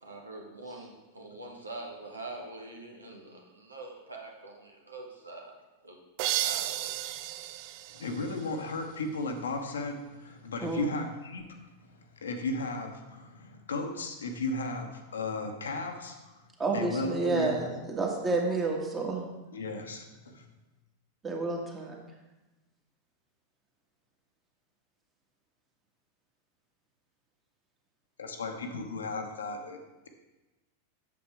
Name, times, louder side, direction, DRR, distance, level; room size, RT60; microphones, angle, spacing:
voice 1, 0.0-5.5 5.8-6.0 6.3-7.0, right 2 dB, 80° right, 1 dB, 1.3 m, -44 dB
sound 1, 6.2-8.9, right 14 dB, 45° right, 0.3 m, -34 dB
voice 2, 7.9-11.4 11.9-16.4 16.7-17.7 19.5-20.4 28.2-29.8, left 2 dB, 70° left, 4 dB, 1.0 m, -35 dB
voice 3, 10.6-10.9 16.6-19.2 21.2-22.0, right 3 dB, 20° right, 0 dB, 1.6 m, -30 dB
8.4 x 7.1 x 3.6 m, 1.1 s
figure-of-eight pair, 90°, 0 cm